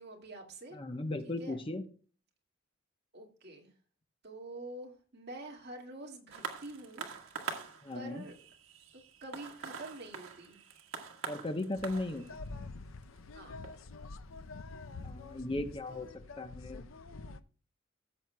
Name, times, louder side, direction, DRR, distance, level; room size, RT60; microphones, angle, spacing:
voice 1, 0.0-0.8 1.2-1.6 3.1-3.7 4.2-7.1 7.9-8.3 8.9-10.6 13.3-13.6, right 1 dB, 55° right, 1 dB, 2.0 m, -47 dB
voice 2, 0.7-1.8 7.8-8.2 11.3-12.4 15.0-16.1 16.4-16.9, left 2 dB, 25° left, 8 dB, 0.8 m, -37 dB
sound 1, 6.3-15.2 15.9-16.0, right 6 dB, 80° right, 1.6 m, -45 dB
sound 2, 11.8-17.4, left 3 dB, 75° left, 0.6 m, -47 dB
16.5 x 7.7 x 2.2 m, 0.37 s
head